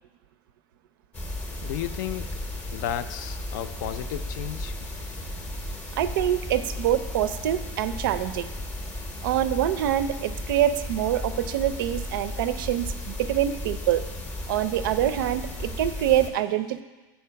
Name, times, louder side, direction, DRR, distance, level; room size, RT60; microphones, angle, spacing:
sound 1, 1.1-16.3, left 1 dB, 15° left, 0.6 m, -35 dB
voice 1, 1.6-2.2 2.7-4.7, left 11 dB, 60° left, 12 dB, 0.4 m, -33 dB
voice 2, 5.9-8.5 9.2-14.0 14.5-16.8, right 11 dB, 85° right, 12 dB, 0.5 m, -25 dB
9.2 x 4.4 x 5.7 m, 1.2 s
supercardioid pair, 175°, 11 cm